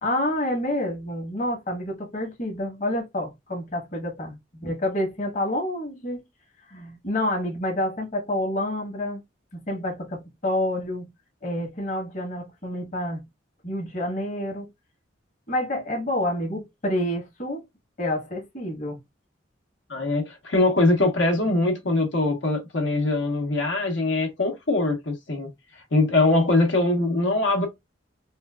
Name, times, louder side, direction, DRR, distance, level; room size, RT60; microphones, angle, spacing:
voice 1, 0.0-6.2 6.7-9.2 9.5-11.1 11.4-13.2 13.6-14.7 15.5-17.6 18.0-19.0, left 1 dB, 40° left, 1.1 m, -28 dB
voice 2, 19.9-27.7, left 2 dB, 85° left, 1.0 m, -22 dB
3.7 x 2.2 x 2.2 m
head